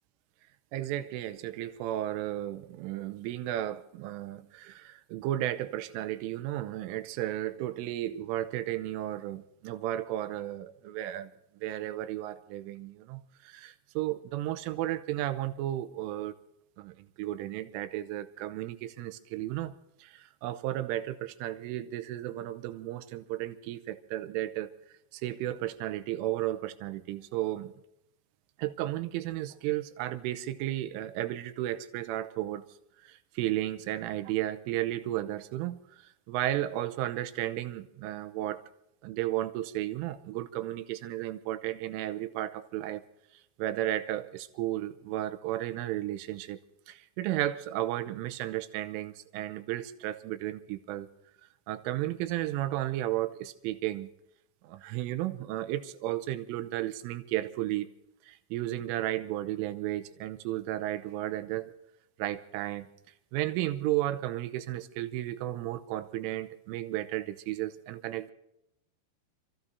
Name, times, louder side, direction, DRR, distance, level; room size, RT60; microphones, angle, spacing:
voice 1, 0.7-11.3 11.6-16.3 16.8-19.7 20.0-24.7 25.1-27.7 28.6-32.6 33.0-38.6 39.0-43.0 43.6-46.6 46.9-51.1 51.7-54.1 54.6-57.9 58.2-61.7 62.2-62.9 63.3-68.3, right 14 dB, 85° right, 3.3 m, -34 dB
29.5 x 14.5 x 2.7 m
omnidirectional pair, 5.7 m